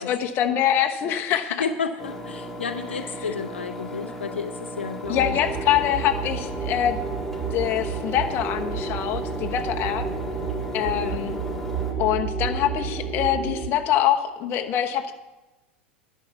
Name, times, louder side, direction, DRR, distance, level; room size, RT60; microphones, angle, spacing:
voice 1, 0.0-1.6 3.3-3.4 5.1-7.0 7.5-10.1 10.7-11.4 12.0-15.1, left 11 dB, 45° left, 5 dB, 1.0 m, -24 dB
voice 2, 1.6-5.4 10.9-11.3, left 5 dB, 85° left, 7 dB, 0.7 m, -31 dB
Engine, 2.0-11.9, equal, 5° left, 2.1 m, -37 dB
sound 1, 5.0-13.7, right 5 dB, 10° right, 3.2 m, -30 dB
11.0 x 5.6 x 7.1 m, 1.1 s
hypercardioid pair, 90°, 6 cm